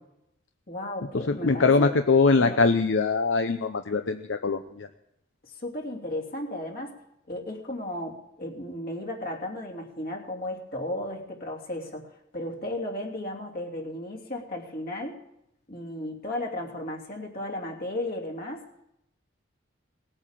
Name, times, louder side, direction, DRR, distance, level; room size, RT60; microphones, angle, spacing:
voice 1, 0.7-1.9 2.4-2.6 5.4-7.0 7.3-15.2 15.7-18.6, left 1 dB, 50° left, -1 dB, 2.9 m, -34 dB
voice 2, 1.3-4.9, left 4 dB, 70° left, 8 dB, 0.7 m, -22 dB
19.0 x 8.8 x 7.5 m, 0.82 s
head